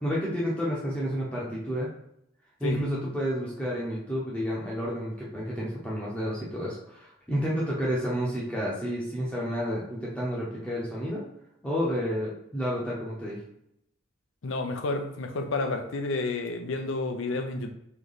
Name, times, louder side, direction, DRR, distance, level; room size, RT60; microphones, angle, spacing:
voice 1, 0.0-1.9 2.6-11.2 11.6-13.4, equal, 5° left, -6 dB, 0.8 m, -30 dB
voice 2, 14.4-17.7, left 3 dB, 75° left, 5 dB, 0.6 m, -30 dB
3.2 x 3.0 x 4.0 m, 0.77 s
head